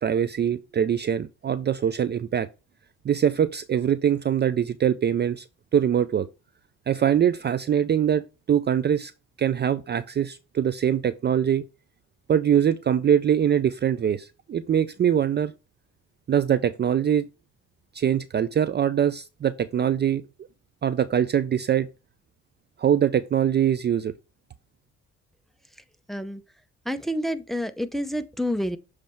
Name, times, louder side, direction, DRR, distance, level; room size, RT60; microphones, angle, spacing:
voice 1, 0.0-2.5 3.0-5.5 5.7-6.3 6.9-9.1 9.4-11.6 12.3-15.5 16.3-17.3 17.9-20.2 20.8-21.9 22.8-24.1, right 9 dB, 35° right, 0.4 m, -23 dB
voice 2, 26.1-26.4 26.8-28.8, equal, ahead, 0.7 m, -28 dB
7.2 x 3.2 x 4.4 m
cardioid pair, 90°, 30 cm